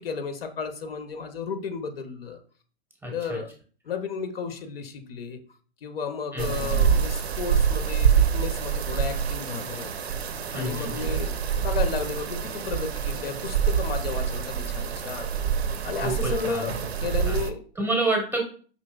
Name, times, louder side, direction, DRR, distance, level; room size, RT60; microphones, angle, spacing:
voice 1, 0.0-2.4 3.1-3.5 3.8-5.4 5.8-10.0 10.5-15.3 15.8-17.6, left 5 dB, 65° left, 8 dB, 0.7 m, -33 dB
voice 2, 3.0-3.4 6.3-6.9 10.5-11.0 16.0-16.7 17.3-17.4 17.8-18.4, right 2 dB, 5° right, 0 dB, 0.7 m, -29 dB
sound 1, 6.4-17.5, right 7 dB, 75° right, 0.5 m, -26 dB
5.1 x 2.9 x 2.2 m, 0.41 s
figure-of-eight pair, 110°, 32 cm